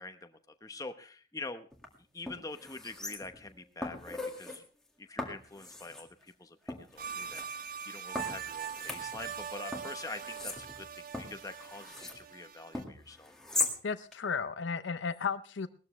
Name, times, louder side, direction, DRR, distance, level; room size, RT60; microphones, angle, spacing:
voice 1, 0.0-1.7 2.1-4.6 5.0-13.3, left 3 dB, 20° left, 8 dB, 1.0 m, -45 dB
sound 1, 1.7-1.9 2.3-3.5 3.8-4.6 5.2-6.1 6.7-7.5 8.2-9.4 9.7-12.2 12.7-13.8 14.1-14.2, left 2 dB, 5° left, 2.0 m, -39 dB
sound 2, 7.0-12.8, right 7 dB, 45° right, 0.8 m, -42 dB
voice 2, 13.8-15.7, left 5 dB, 65° left, 13 dB, 0.6 m, -34 dB
19.0 x 13.0 x 3.2 m, 0.36 s
head